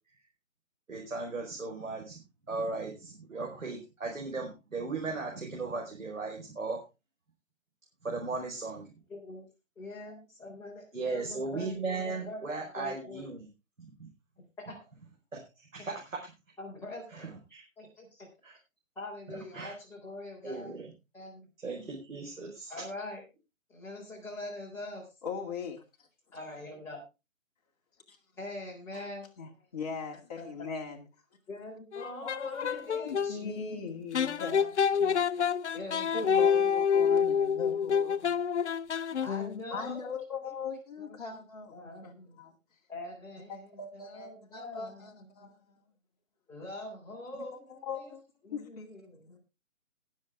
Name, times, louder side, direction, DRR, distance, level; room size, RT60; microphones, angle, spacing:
voice 1, 0.9-2.2 2.5-6.8 8.0-8.9 10.9-13.5 13.8-14.1 15.3-16.3 17.1-17.6 18.4-18.6 19.3-19.7 20.4-20.9 21.6-22.7, right 3 dB, 80° right, 4.9 m, -37 dB
voice 2, 9.1-9.5 9.8-13.3 14.7-14.8 16.6-17.4 17.8-18.3 19.0-20.7 21.1-21.5 22.7-23.2 23.7-25.0 26.3-27.0 28.4-29.6 30.4-30.5 31.5-33.8 34.4-34.8 35.7-36.7 37.6-37.8 39.2-40.6 41.0-41.4 41.7-42.4 42.9-45.5 46.5-48.1 48.4-49.4, left 2 dB, 5° left, 3.9 m, -44 dB
voice 3, 25.2-25.8 28.1-28.2 28.9-29.1 29.4-31.1 32.2-35.2 36.1-38.4 38.9-39.1 39.7-42.1 42.4-42.5 43.5-45.8 47.7-48.2 48.5-48.9 49.3-49.4, left 5 dB, 30° left, 2.2 m, -40 dB
sound 1, 31.9-33.3 34.1-39.6, left 7 dB, 60° left, 0.6 m, -27 dB
20.5 x 7.6 x 3.6 m
figure-of-eight pair, 160°, 40 cm